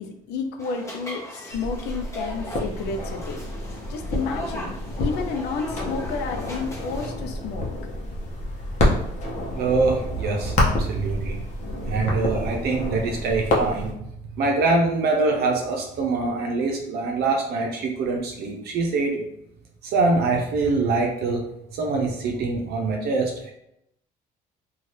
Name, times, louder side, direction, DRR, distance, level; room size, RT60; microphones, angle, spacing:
voice 1, 0.0-3.4 3.9-7.7, left 4 dB, 85° left, 5 dB, 0.5 m, -31 dB
sound 1, 0.6-7.1, equal, 20° left, 0.9 m, -39 dB
sound 2, 1.5-13.9, left 1 dB, 45° left, 0.8 m, -28 dB
voice 2, 9.5-11.4 11.8-14.0 14.4-19.3 19.8-21.5 21.7-23.5, right 3 dB, 70° right, 1 dB, 0.6 m, -24 dB
2.7 x 2.3 x 3.2 m, 0.80 s
cardioid pair, 110°, 17 cm